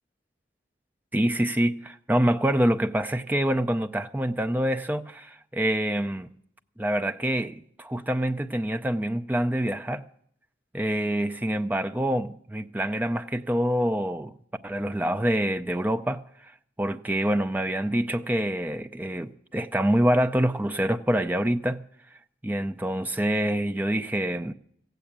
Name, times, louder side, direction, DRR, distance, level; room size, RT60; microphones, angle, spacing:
voice 1, 1.1-6.3 6.8-10.0 10.7-14.3 14.6-16.5 16.8-21.8 22.4-24.5, right 1 dB, 10° right, 0.5 m, -26 dB
14.5 x 8.0 x 8.6 m
head